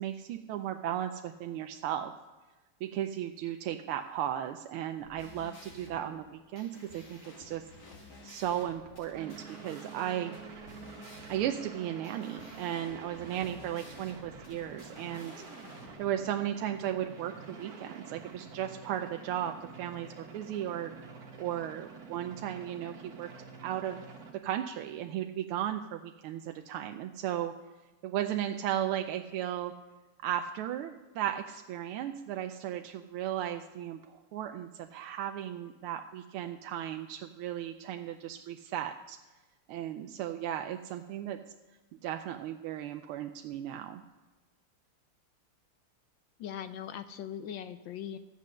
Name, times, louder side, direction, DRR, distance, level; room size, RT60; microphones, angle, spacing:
voice 1, 0.0-2.1 2.8-7.6 8.2-10.4 11.3-15.3 16.0-23.3 23.6-24.0 24.3-27.5 28.0-29.7 30.2-39.2 39.7-41.4 42.0-44.0, right 11 dB, 85° right, 6 dB, 1.5 m, -35 dB
sound 1, 4.9-15.9, left 2 dB, 50° left, 2.6 m, -53 dB
sound 2, 9.2-24.3, right 4 dB, 45° right, 1.8 m, -48 dB
voice 2, 46.4-48.2, left 9 dB, 75° left, 11 dB, 1.1 m, -40 dB
14.0 x 8.3 x 6.4 m, 1.2 s
omnidirectional pair, 2.4 m